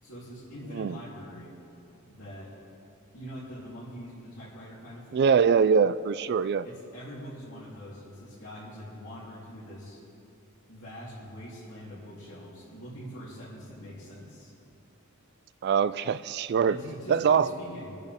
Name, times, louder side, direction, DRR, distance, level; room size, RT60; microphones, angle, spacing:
voice 1, 0.0-1.5 2.1-2.5 3.1-5.3 6.6-10.0 10.7-14.5 16.6-17.9, equal, 65° left, -11 dB, 3.5 m, -43 dB
voice 2, 5.1-6.6 15.6-16.8 17.1-17.5, right 6 dB, 50° right, 15 dB, 0.3 m, -23 dB
25.5 x 9.8 x 3.6 m, 2.8 s
head